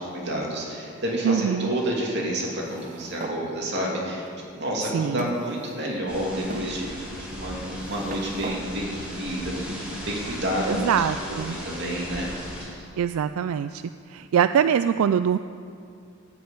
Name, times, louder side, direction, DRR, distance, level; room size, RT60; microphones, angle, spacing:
voice 1, 0.0-4.2 4.5-12.9, equal, 55° right, -2 dB, 2.7 m, -30 dB
voice 2, 1.2-1.8 4.9-5.3 10.7-11.6 13.0-13.8 14.1-15.4, right 8 dB, 85° right, 11 dB, 0.3 m, -23 dB
sound 1, 2.6-3.4 4.2-4.3 5.2-6.0 6.5-6.7 7.6-8.6, right 2 dB, 40° right, 0.8 m, -38 dB
sound 2, 6.1-12.6, equal, 5° right, 3.8 m, -38 dB
13.5 x 6.3 x 8.8 m, 2.4 s
head